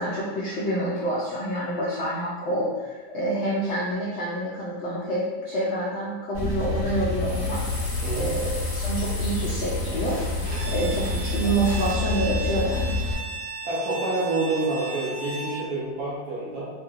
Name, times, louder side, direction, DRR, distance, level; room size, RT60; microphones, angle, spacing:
voice 1, 0.0-7.6 8.2-10.2 10.7-13.0, right 1 dB, 80° left, -6 dB, 0.6 m, -27 dB
Male speech man speaking / Car / Idling, 6.3-13.1, left 2 dB, 20° left, 1.4 m, -28 dB
sound 1, 7.1-11.9, left 1 dB, 30° right, 0.7 m, -38 dB
voice 2, 8.0-8.3 13.6-16.7, right 2 dB, 65° right, -8 dB, 1.1 m, -28 dB
Bowed string instrument, 10.5-15.7, right 4 dB, 85° right, 1.4 m, -36 dB
3.1 x 2.8 x 2.4 m, 1.3 s
omnidirectional pair, 1.8 m